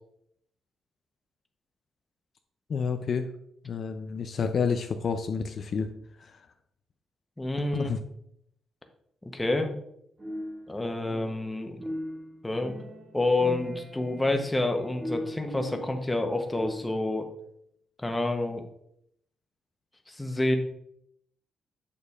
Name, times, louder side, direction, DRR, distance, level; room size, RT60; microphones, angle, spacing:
voice 1, 2.7-3.3 3.6-5.9 6.2-6.4 7.7-8.0, left 5 dB, 50° left, 7 dB, 0.4 m, -29 dB
voice 2, 7.4-7.9 9.2-9.8 10.7-11.8 12.4-12.8 13.1-17.3 18.0-18.6 20.1-20.6, left 2 dB, 10° left, 5 dB, 0.8 m, -28 dB
sound 1, 10.2-11.5 11.8-17.1, equal, 25° right, 2.2 m, -40 dB
6.8 x 6.7 x 2.4 m, 0.73 s
cardioid pair, 120°, 0 cm